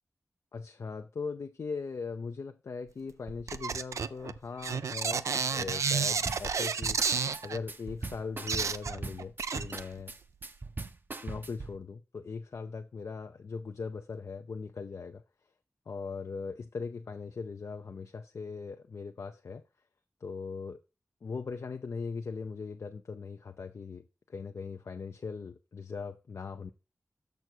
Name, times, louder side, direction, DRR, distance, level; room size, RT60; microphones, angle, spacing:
voice 1, 0.5-7.0 7.4-10.2 11.2-15.2 15.9-19.6 20.2-20.8 21.2-26.7, left 4 dB, 75° left, 0.5 m, -40 dB
sound 1, 3.3-7.6 8.1-8.2 8.5-10.1 10.4-10.5, right 6 dB, 85° right, 0.4 m, -31 dB
sound 2, 6.3-11.8, right 3 dB, 40° right, 0.7 m, -40 dB
6.7 x 6.3 x 4.5 m
cardioid pair, 40°, 5 cm